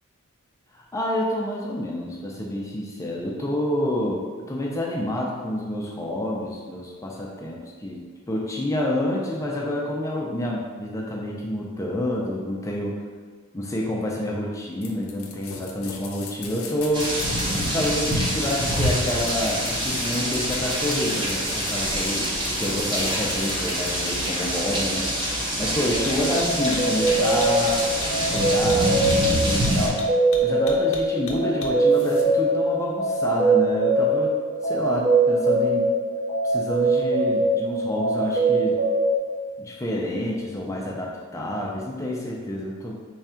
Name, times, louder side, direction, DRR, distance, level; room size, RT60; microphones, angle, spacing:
voice 1, 0.7-13.0 13.5-17.1 17.7-25.1 25.6-27.8 28.2-30.1 30.4-34.4 34.6-35.9 36.4-38.8 39.6-43.0, left 1 dB, 15° left, -2 dB, 0.4 m, -28 dB
sound 1, 14.8-32.2, left 4 dB, 70° left, 0.5 m, -39 dB
sound 2, 16.9-29.9, equal, 20° right, 0.7 m, -26 dB
sound 3, 25.9-39.2, right 2 dB, 40° right, 1.3 m, -22 dB
3.4 x 2.3 x 4.3 m, 1.5 s
head